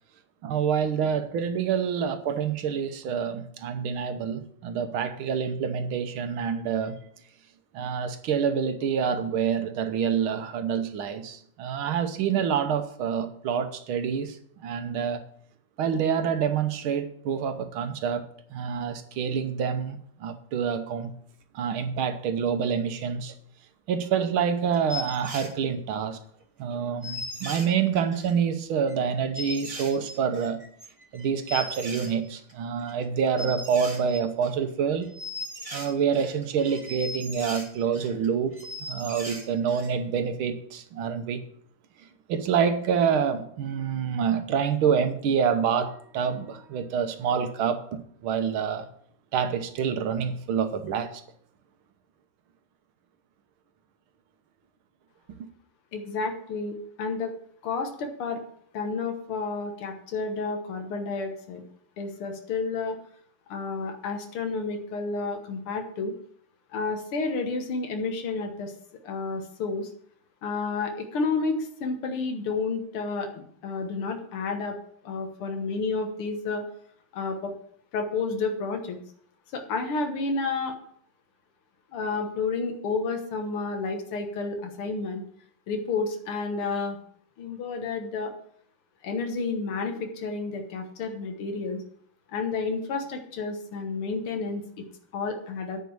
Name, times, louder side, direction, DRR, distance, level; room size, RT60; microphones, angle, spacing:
voice 1, 0.4-7.0 7.7-14.4 14.6-15.2 15.8-21.1 21.5-23.3 23.9-26.2 26.6-30.6 31.1-35.1 35.7-38.6 38.9-41.4 42.3-48.9 49.3-51.2, right 7 dB, 75° right, 1.7 m, -27 dB
sound 1, 24.3-24.4 24.7-25.5 26.1-26.2 26.4-26.5 26.7-26.8 27.0-28.4 28.9-29.0 29.3-32.5 32.8-33.0 33.4-34.7 35.0-38.3 38.5-39.9 40.2-40.3, left 1 dB, 20° right, 1.4 m, -38 dB
voice 2, 55.9-57.3 57.6-58.4 58.7-61.6 62.0-63.0 63.5-66.1 66.7-68.7 69.0-69.9 70.4-74.8 75.0-76.6 77.1-77.5 77.9-79.0 79.5-80.7 81.9-85.2 85.7-87.0 87.4-88.3 89.0-91.8 92.3-94.6 95.1-95.8, left 4 dB, 85° left, 2.2 m, -30 dB
9.4 x 5.2 x 8.0 m
omnidirectional pair, 2.4 m